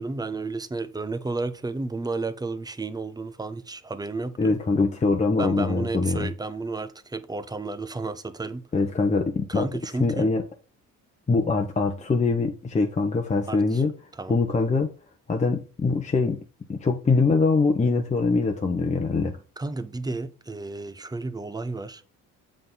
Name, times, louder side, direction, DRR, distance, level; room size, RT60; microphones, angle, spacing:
voice 1, 0.0-4.6 5.4-8.7 9.5-10.3 13.4-13.8 14.1-14.4 19.6-22.0, right 3 dB, 10° right, 0.7 m, -32 dB
voice 2, 4.4-6.3 8.7-9.7 10.0-10.4 11.3-13.9 14.3-14.9 15.3-16.4 16.7-19.4, left 3 dB, 20° left, 1.0 m, -23 dB
7.7 x 3.7 x 5.6 m
cardioid pair, 115°, 33 cm